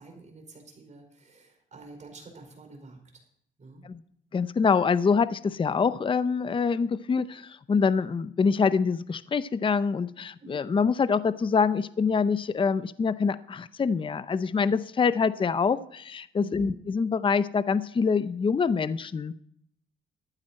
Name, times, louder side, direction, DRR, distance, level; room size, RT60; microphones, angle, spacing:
voice 1, 0.0-3.0 3.6-3.9 10.4-10.6 16.4-16.8, right 4 dB, 35° right, 3 dB, 5.0 m, -47 dB
voice 2, 4.3-19.4, left 5 dB, 25° left, 15 dB, 0.6 m, -25 dB
14.0 x 12.0 x 4.3 m, 0.69 s
cardioid pair, 90°, 20 cm